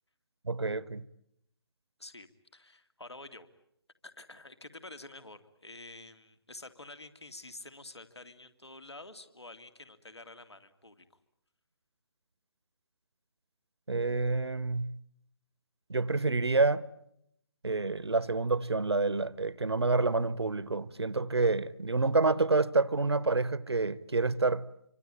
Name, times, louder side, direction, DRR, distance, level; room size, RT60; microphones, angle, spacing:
voice 1, 0.4-1.1 13.9-15.0 15.9-16.9 17.6-24.7, right 3 dB, 75° right, 1.1 m, -28 dB
voice 2, 2.5-3.5 4.0-11.1, left 2 dB, 80° left, 2.6 m, -49 dB
26.5 x 25.5 x 8.9 m
figure-of-eight pair, 140°, 14 cm